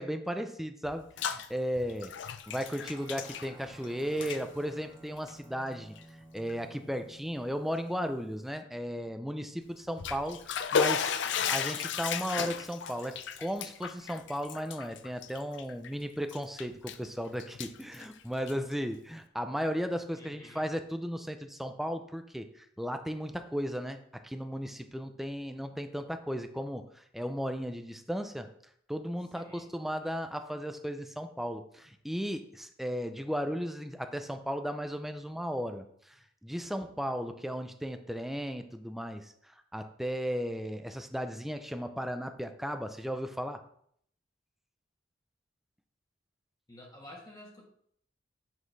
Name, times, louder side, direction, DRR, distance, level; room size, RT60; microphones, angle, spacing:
voice 1, 0.0-5.9 6.3-11.1 11.5-28.5 28.9-36.2 36.4-39.3 39.7-43.6, equal, ahead, 7 dB, 0.5 m, -35 dB
Bathtub (filling or washing), 0.8-1.5 1.8-3.9 4.1-4.4 5.2-5.3 6.0-6.1 6.5-6.6 9.8-15.9 16.3-17.1 17.4-18.7, left 7 dB, 65° left, 0.5 m, -34 dB
Guitar, 2.8-11.5, right 1 dB, 20° right, 1.8 m, -56 dB
voice 2, 3.8-4.3 11.2-11.6 20.1-20.6 29.3-29.7 46.7-47.7, left 1 dB, 20° left, -1 dB, 1.3 m, -51 dB
7.4 x 6.0 x 3.3 m, 0.66 s
head